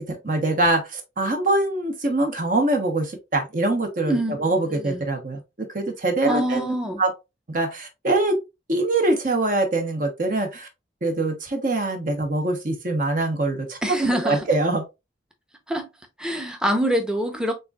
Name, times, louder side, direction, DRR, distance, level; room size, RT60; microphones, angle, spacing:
voice 1, 0.1-7.1 7.5-8.4 8.7-10.7 11.0-14.9, right 2 dB, 45° right, 0.9 m, -24 dB
voice 2, 4.1-4.5 4.7-5.0 6.2-7.0 13.8-14.5 15.7-15.9 16.2-17.5, right 1 dB, 5° right, 0.7 m, -25 dB
6.6 x 2.5 x 2.3 m
head